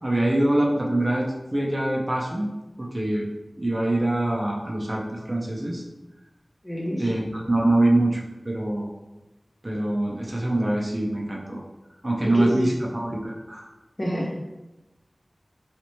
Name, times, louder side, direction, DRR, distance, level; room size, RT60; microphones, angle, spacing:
voice 1, 0.0-2.5 2.8-3.2 3.6-5.8 7.0-8.9 9.6-11.6 12.0-13.7, right 1 dB, 35° right, -3 dB, 0.6 m, -24 dB
voice 2, 6.6-7.1 12.2-12.7 14.0-14.4, equal, 35° left, -5 dB, 1.0 m, -27 dB
3.2 x 2.9 x 2.9 m, 1.0 s
wide cardioid pair, 60°, 0 cm